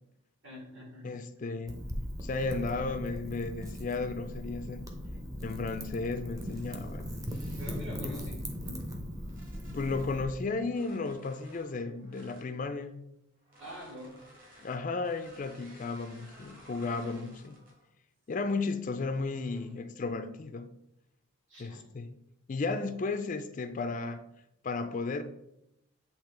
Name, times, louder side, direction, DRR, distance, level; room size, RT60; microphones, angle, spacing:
voice 1, 0.4-1.1 7.6-8.8 13.6-14.2 21.5-21.8, equal, 60° right, 2.4 m, -45 dB
voice 2, 1.0-1.8 2.2-4.9 5.4-7.1 8.0-8.2 9.7-13.0 14.6-17.6 18.3-20.7 21.6-22.1 22.5-24.2 24.6-25.2, left 3 dB, 40° left, 0.4 m, -34 dB
Wind / Fire, 1.7-10.3, equal, 15° right, 0.7 m, -39 dB
sound 1, 6.4-8.0 8.6-10.2 10.7-12.5 13.4-17.9 18.3-18.6 19.3-19.8, equal, 40° right, 2.1 m, -57 dB
8.4 x 2.8 x 4.5 m
head